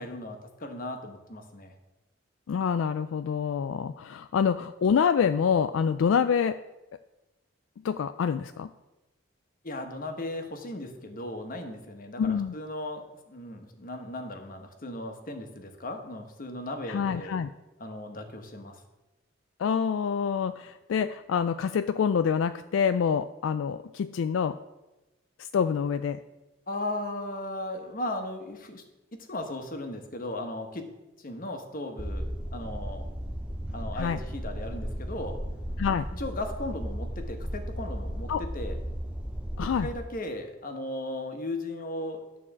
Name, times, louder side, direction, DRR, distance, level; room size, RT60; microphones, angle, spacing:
voice 1, 0.0-1.7 9.6-17.4 17.8-18.8 26.7-28.8 29.1-30.9 31.2-33.1 33.7-35.4 36.1-38.8 39.6-42.2, left 1 dB, 45° left, 5 dB, 1.1 m, -37 dB
voice 2, 2.5-6.6 7.8-8.7 12.2-12.5 16.9-17.5 19.6-24.6 25.4-26.2 33.9-34.2 35.8-36.1 38.3-38.4 39.6-39.9, left 7 dB, 75° left, 10 dB, 0.3 m, -26 dB
sound 1, 32.0-40.0, equal, 5° right, 0.6 m, -35 dB
11.0 x 4.1 x 7.3 m, 1.0 s
head